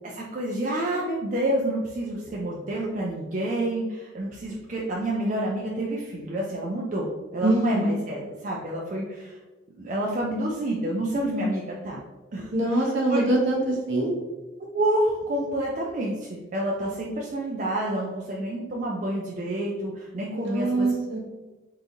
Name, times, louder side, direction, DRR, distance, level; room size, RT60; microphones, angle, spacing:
voice 1, 0.0-9.4 9.8-12.0 12.3-12.5 12.8-13.2 14.7-20.9, right 1 dB, 40° right, -3 dB, 0.4 m, -28 dB
voice 2, 7.4-8.0 12.5-14.1 20.3-21.2, right 2 dB, 65° right, -2 dB, 0.9 m, -24 dB
3.8 x 2.5 x 2.8 m, 1.1 s
head